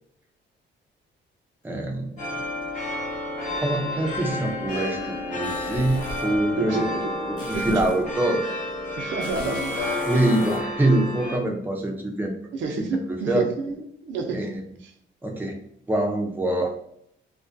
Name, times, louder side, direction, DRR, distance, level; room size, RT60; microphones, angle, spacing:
voice 1, 1.6-2.1 3.6-6.8 7.3-8.4 10.0-12.3 12.8-13.5 14.3-14.6 15.2-15.6 15.9-16.7, right 1 dB, 10° right, 1 dB, 0.5 m, -25 dB
sound 1, 2.2-11.4, left 1 dB, 35° left, 1.0 m, -31 dB
sound 2, 5.4-6.4 7.4-8.1 9.2-10.6, left 1 dB, 90° left, 0.6 m, -36 dB
voice 2, 6.6-8.1 8.9-10.1 12.5-14.5 14.8-14.9, right 4 dB, 70° right, 3 dB, 0.5 m, -31 dB
2.3 x 2.2 x 2.5 m, 0.67 s
cardioid pair, 90°, 20 cm